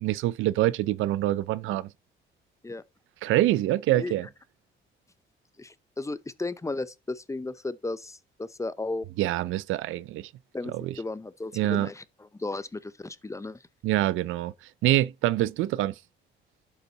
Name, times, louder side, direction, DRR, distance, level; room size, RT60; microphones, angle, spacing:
voice 1, 0.0-1.9 3.2-4.3 9.2-10.3 10.8-10.9 11.5-11.9 13.8-14.5 14.8-15.9, right 15 dB, 85° right, 0.5 m, -25 dB
voice 2, 5.6-9.1 10.5-13.6, left 2 dB, 15° left, 0.6 m, -35 dB
11.5 x 5.7 x 4.0 m
cardioid pair, 90°, 20 cm